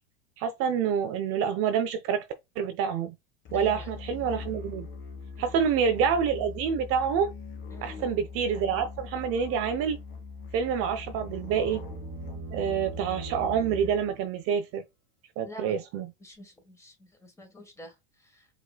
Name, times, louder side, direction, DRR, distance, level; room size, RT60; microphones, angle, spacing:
voice 1, 0.4-2.3 2.6-3.1 3.5-4.9 5.4-7.3 7.8-10.0 10.5-11.8 12.5-14.8 15.4-16.1, right 7 dB, 45° right, 0.6 m, -27 dB
Musical instrument, 3.4-14.2, left 5 dB, 40° left, 1.6 m, -42 dB
voice 2, 3.5-3.9 5.4-5.7 7.7-8.1 15.4-15.8 16.2-18.5, left 1 dB, 10° left, 1.6 m, -48 dB
sound 1, 10.5-14.4, right 3 dB, 30° right, 1.1 m, -42 dB
4.9 x 3.1 x 2.3 m
hypercardioid pair, 105°, 32 cm